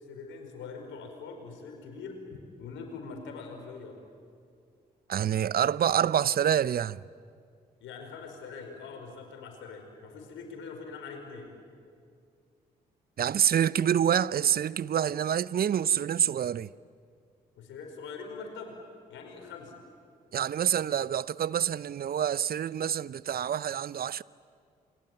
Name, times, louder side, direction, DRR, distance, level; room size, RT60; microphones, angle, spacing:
voice 1, 0.1-2.2 2.6-4.0 7.8-11.5 17.6-18.7 19.1-19.7, left 4 dB, 75° left, 4.9 m, -43 dB
voice 2, 5.1-7.0 13.2-16.7 20.3-24.2, right 9 dB, 50° right, 0.6 m, -27 dB
28.0 x 23.0 x 9.1 m
hypercardioid pair, 45°, 20 cm